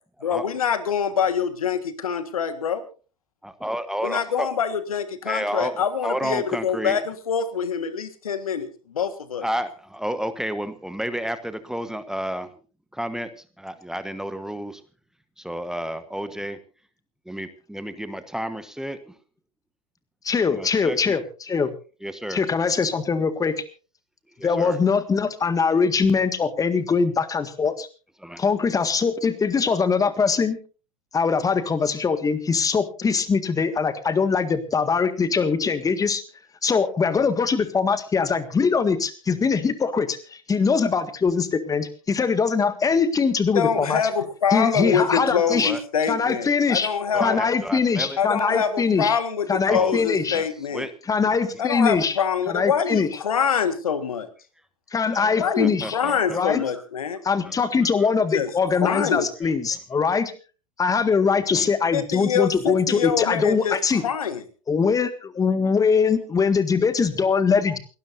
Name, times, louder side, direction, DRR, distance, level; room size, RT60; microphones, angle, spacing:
voice 1, 0.2-2.8 4.0-9.4 43.5-47.4 48.2-50.9 51.6-54.3 55.4-57.2 58.3-59.3 61.9-63.8 64.0-64.4, left 7 dB, 80° left, 12 dB, 1.7 m, -25 dB
voice 2, 3.4-4.5 5.2-7.0 9.4-12.5 12.9-13.3 13.6-14.8 15.4-16.6 17.3-19.1 20.5-21.1 22.0-22.4 24.4-24.8 28.2-28.4 45.5-45.8 47.1-48.2 48.5-48.6 49.7-50.0 50.3-50.9 55.1-56.6 57.4-57.6 58.0-58.1 59.4-59.5 61.5-61.7, equal, 5° right, 11 dB, 1.1 m, -31 dB
voice 3, 20.2-21.7 22.3-23.5 24.4-27.9 28.4-30.6 31.1-36.2 36.6-44.0 44.5-45.7 46.1-46.9 47.2-49.2 49.5-50.4 51.1-52.2 52.5-53.1 54.9-56.0 56.3-56.6 57.2-60.3 60.8-64.0 64.7-67.8, left 5 dB, 20° left, 12 dB, 1.8 m, -22 dB
28.5 x 12.5 x 2.7 m, 0.35 s
hypercardioid pair, 90°, 18 cm